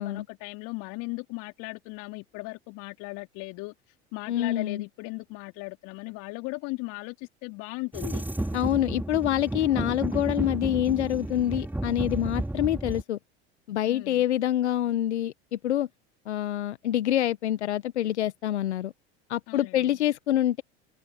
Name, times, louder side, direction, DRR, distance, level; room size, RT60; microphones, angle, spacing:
voice 1, 0.0-8.2 13.8-14.2 19.5-20.0, left 28 dB, 60° left, 4.2 m, -38 dB
voice 2, 4.3-4.8 8.5-13.2 13.7-15.3 15.6-15.9 16.3-18.9 19.3-20.6, left 12 dB, 80° left, 1.3 m, -26 dB
sound 1, 7.9-13.0, right 1 dB, 5° right, 2.7 m, -32 dB
hypercardioid pair, 80°, 34 cm